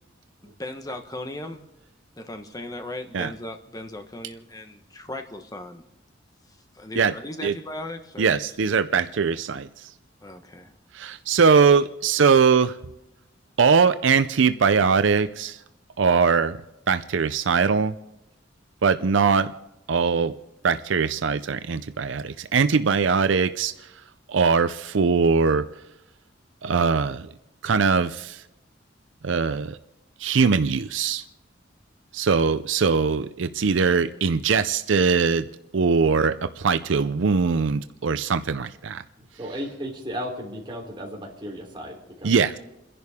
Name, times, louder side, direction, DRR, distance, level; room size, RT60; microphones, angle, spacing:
voice 1, 0.4-1.6 2.2-5.8 6.7-8.4 10.2-10.7, left 1 dB, 20° left, 6 dB, 1.2 m, -37 dB
voice 2, 8.2-9.9 10.9-12.8 13.6-15.6 16.0-16.6 16.9-17.9 18.8-19.5 19.9-20.3 20.6-23.9 24.3-25.7 26.6-27.3 27.6-28.4 29.2-29.8 30.2-31.2 32.1-35.5 35.7-39.0 42.2-42.6, right 5 dB, 80° right, 12 dB, 0.5 m, -21 dB
voice 3, 39.2-42.5, equal, 25° right, -1 dB, 3.5 m, -35 dB
29.5 x 11.0 x 3.6 m, 0.91 s
head